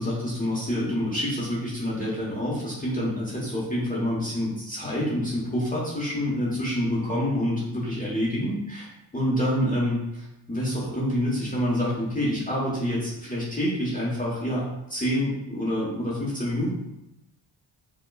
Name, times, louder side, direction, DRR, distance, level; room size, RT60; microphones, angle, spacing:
voice 1, 0.0-16.7, equal, 15° left, -6 dB, 1.0 m, -27 dB
5.7 x 2.2 x 2.3 m, 0.90 s
cardioid pair, 85°, 50 cm